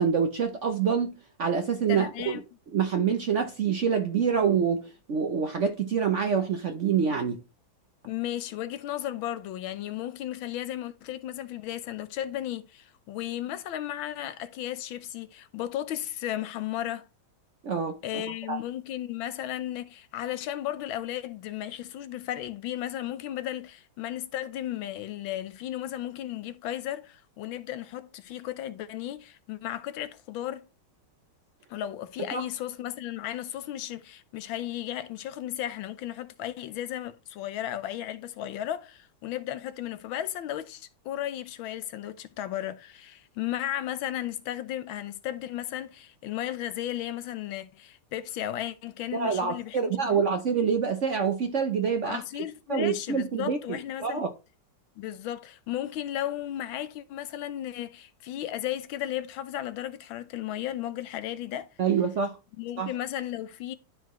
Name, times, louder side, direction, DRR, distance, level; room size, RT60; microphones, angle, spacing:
voice 1, 0.0-2.4 2.7-7.4 17.6-18.2 18.5-18.6 32.3-32.4 49.1-52.2 52.7-54.3 61.8-62.4 62.8-62.9, right 6 dB, 60° right, 0.8 m, -26 dB
voice 2, 1.9-2.4 8.0-17.0 18.0-30.7 31.7-50.2 52.0-54.2 55.0-61.7 62.6-63.8, left 12 dB, 90° left, 1.5 m, -35 dB
12.0 x 4.7 x 3.0 m
omnidirectional pair, 2.1 m